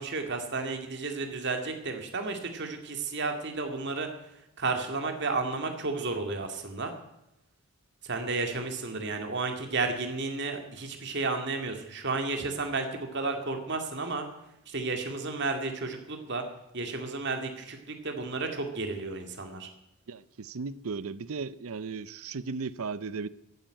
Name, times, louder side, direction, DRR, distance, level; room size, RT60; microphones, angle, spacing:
voice 1, 0.0-4.1 4.6-6.9 8.0-14.3 14.7-16.4 16.7-19.7, right 3 dB, 50° right, 2.3 m, -32 dB
voice 2, 20.1-23.3, right 4 dB, 70° right, 0.6 m, -36 dB
15.0 x 8.9 x 9.0 m
head